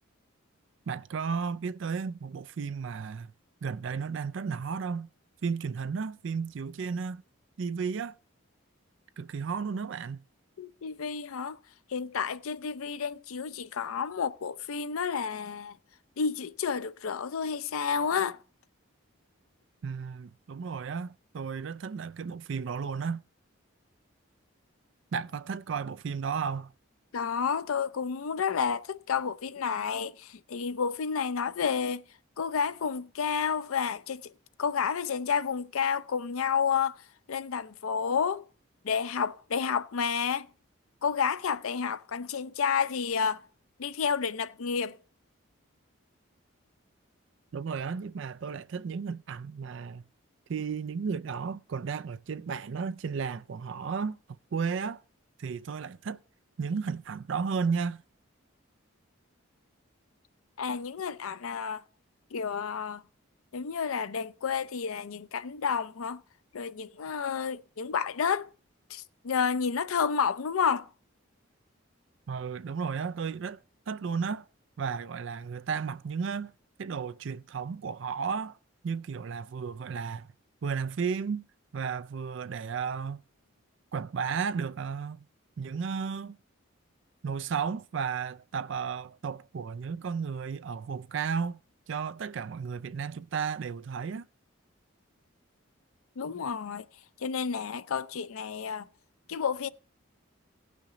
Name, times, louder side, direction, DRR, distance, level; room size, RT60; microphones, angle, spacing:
voice 1, 0.9-3.3 3.6-5.1 5.4-7.2 7.6-8.1 9.2-10.2 19.8-23.2 25.1-26.7 47.5-50.0 50.5-54.2 54.5-55.0 55.4-56.2 56.6-58.0 72.3-73.6 73.9-74.5 74.8-76.5 76.8-78.6 78.8-80.3 80.6-81.4 81.7-83.2 83.9-85.3 85.6-86.4 87.2-91.6 91.9-94.3, right 6 dB, 60° right, 0.4 m, -33 dB
voice 2, 10.6-11.6 11.9-15.8 16.2-18.4 27.1-32.0 32.4-34.3 34.6-37.0 37.3-38.4 38.8-40.5 41.0-43.4 43.8-45.0 60.6-61.8 62.3-63.0 63.5-66.2 66.5-68.5 68.9-70.9 96.2-96.9 97.2-98.9 99.3-99.7, left 6 dB, 85° left, 0.5 m, -30 dB
17.0 x 5.9 x 3.8 m
head